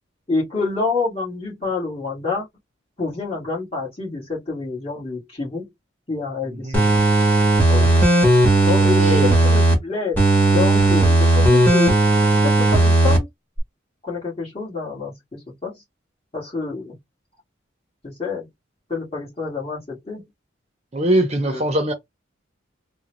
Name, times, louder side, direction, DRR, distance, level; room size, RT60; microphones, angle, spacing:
voice 1, 0.3-2.5 3.0-5.7 6.1-6.8 7.7-7.9 8.6-10.2 10.5-12.0 12.4-13.3 14.0-15.8 16.3-17.0 18.0-18.5 18.9-20.2 21.5-21.6, left 4 dB, 30° left, 2.0 m, -27 dB
voice 2, 6.5-6.9 8.7-9.4 20.9-21.9, right 1 dB, 30° right, 0.7 m, -22 dB
sound 1, 6.7-9.7 10.2-13.2 13.6-13.7, right 2 dB, 10° left, 1.4 m, -15 dB
3.6 x 2.3 x 3.0 m
head